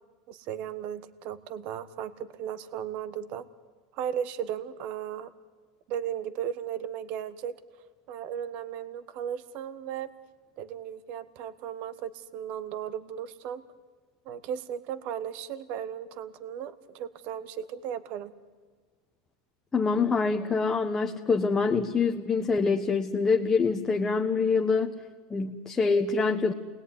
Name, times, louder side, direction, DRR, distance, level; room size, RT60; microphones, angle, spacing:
voice 1, 0.3-3.4 3.9-5.3 5.9-7.5 8.1-10.1 10.6-13.6 14.2-18.3, right 9 dB, 50° right, 14 dB, 1.3 m, -36 dB
voice 2, 19.7-24.9 25.3-26.5, left 4 dB, 15° left, 3 dB, 1.2 m, -25 dB
28.5 x 20.5 x 9.7 m, 1.5 s
supercardioid pair, 135°, 3 cm